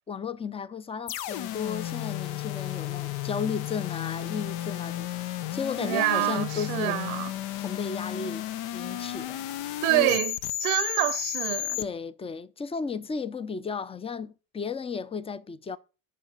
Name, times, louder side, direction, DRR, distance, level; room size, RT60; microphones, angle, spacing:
voice 1, 0.1-7.0 7.6-8.4 8.7-9.5 9.9-10.2 11.8-15.8, left 5 dB, 15° left, 0.7 m, -34 dB
sound 1, 1.1-11.8, left 13 dB, 60° left, 1.0 m, -33 dB
voice 2, 5.8-7.3 9.8-11.8, right 22 dB, 75° right, 0.8 m, -27 dB
18.5 x 6.6 x 4.1 m
supercardioid pair, 105°, 42 cm